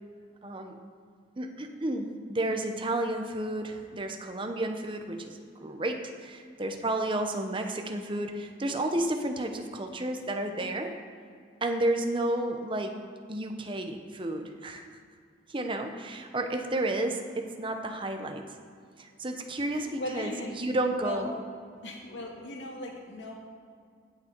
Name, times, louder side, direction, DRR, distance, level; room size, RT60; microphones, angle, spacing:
voice 1, 0.4-0.8 1.4-10.9 11.6-13.0 13.3-14.9 15.5-18.4 19.0-21.3, right 1 dB, 30° right, 4 dB, 0.9 m, -31 dB
voice 2, 19.7-20.6 21.0-21.2 21.8-23.3, left 1 dB, 80° left, 0 dB, 2.1 m, -38 dB
16.5 x 6.4 x 4.6 m, 2.2 s
head